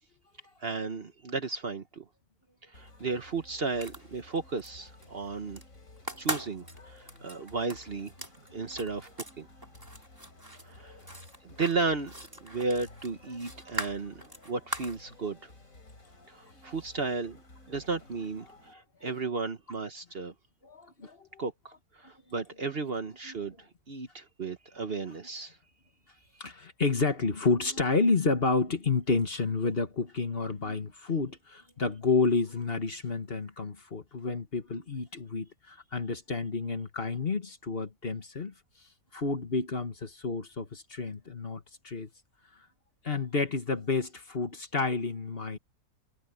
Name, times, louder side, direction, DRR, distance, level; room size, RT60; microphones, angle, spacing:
voice 1, 0.6-2.0 2.6-5.6 6.2-8.1 8.5-9.1 9.4-9.5 10.6-10.9 11.4-12.1 12.4-15.5 16.3-17.4 17.7-20.3 21.4-21.5 21.9-25.6 26.3-26.4, right 4 dB, 45° right, 1.2 m, -34 dB
sound 1, 2.7-18.7, left 2 dB, 65° left, 5.0 m, -54 dB
sound 2, 3.8-4.7 5.0-5.6 6.0-9.4 9.6-15.0, right 1 dB, 15° right, 4.4 m, -40 dB
voice 2, 20.6-21.4 23.3-23.4 26.4-38.5 39.1-42.1 43.0-45.6, left 4 dB, 40° left, 1.8 m, -30 dB
omnidirectional pair, 1.5 m